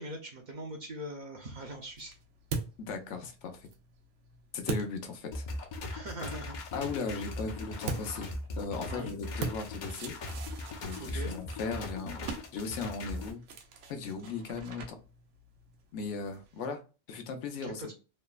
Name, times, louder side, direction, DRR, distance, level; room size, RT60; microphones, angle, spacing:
voice 1, 0.0-2.1 5.9-6.6 8.9-9.1 11.0-11.4 17.6-17.9, right 1 dB, 55° right, 3 dB, 0.6 m, -41 dB
sound 1, 1.4-5.8 7.8-16.7, right 5 dB, 85° right, 0.9 m, -43 dB
voice 2, 2.8-3.6 4.5-5.5 6.7-8.3 8.6-10.2 10.8-12.3 12.5-13.4 13.9-15.0 15.9-16.8 17.1-17.8, left 4 dB, 85° left, 6 dB, 1.0 m, -37 dB
sound 2, 5.3-13.3, left 2 dB, 55° left, 0.6 m, -39 dB
3.1 x 2.0 x 2.2 m, 0.33 s
omnidirectional pair, 1.2 m